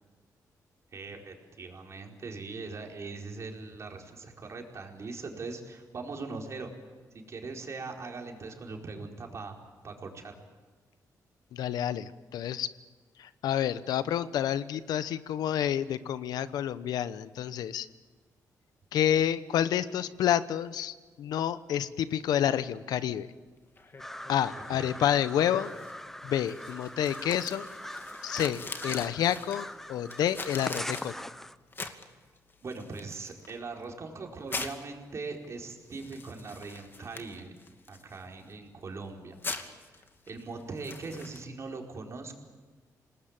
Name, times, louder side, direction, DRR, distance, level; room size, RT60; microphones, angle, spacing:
voice 1, 0.9-6.7 7.1-9.6 9.8-10.4 24.7-24.9 32.6-37.5 37.9-39.3 40.3-42.4, right 3 dB, 45° right, 1 dB, 4.5 m, -40 dB
voice 2, 11.5-12.7 13.2-17.9 18.9-23.3 24.3-25.7 26.2-27.7 28.2-31.1, left 10 dB, 85° left, 14 dB, 0.9 m, -29 dB
sound 1, 23.5-41.4, left 3 dB, 35° left, 2.4 m, -44 dB
sound 2, 24.0-31.6, left 1 dB, 5° left, 0.9 m, -42 dB
27.0 x 19.5 x 8.9 m, 1.4 s
cardioid pair, 85°, 7 cm